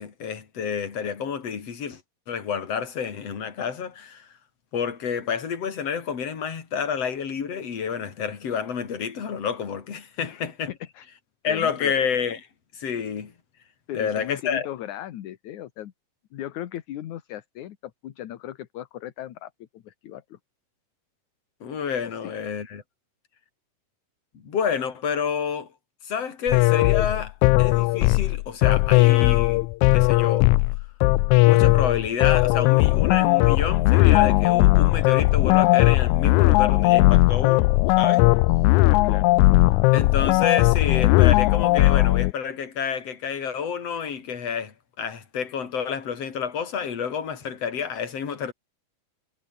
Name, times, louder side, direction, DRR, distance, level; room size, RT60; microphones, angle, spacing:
voice 1, 0.0-2.0 2.3-4.3 4.7-10.7 11.4-12.4 12.7-13.3 13.9-14.7 21.6-22.8 24.3-25.7 26.0-29.7 29.9-30.6 31.4-38.3 39.9-48.5, left 7 dB, 50° left, 3.8 m, -29 dB
voice 2, 10.2-11.1 11.5-11.9 13.9-15.9 16.3-20.4 22.0-22.3 38.8-39.6, left 12 dB, 65° left, 2.6 m, -37 dB
sound 1, 26.5-42.3, left 21 dB, 85° left, 1.7 m, -18 dB
omnidirectional pair, 3.9 m